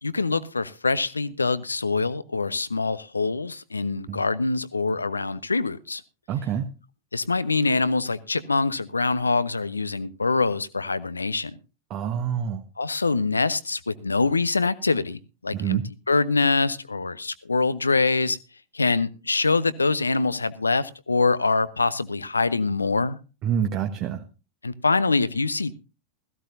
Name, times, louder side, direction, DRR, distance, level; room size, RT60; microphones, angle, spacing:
voice 1, 0.0-6.0 7.1-11.6 12.8-15.8 16.1-18.4 18.7-23.2 24.6-25.7, left 3 dB, 80° left, 17 dB, 0.7 m, -24 dB
voice 2, 6.3-6.7 11.9-12.6 15.5-15.8 23.4-24.3, right 9 dB, 35° right, 5 dB, 1.2 m, -27 dB
16.5 x 15.0 x 2.7 m, 0.31 s
figure-of-eight pair, 90°, 0 cm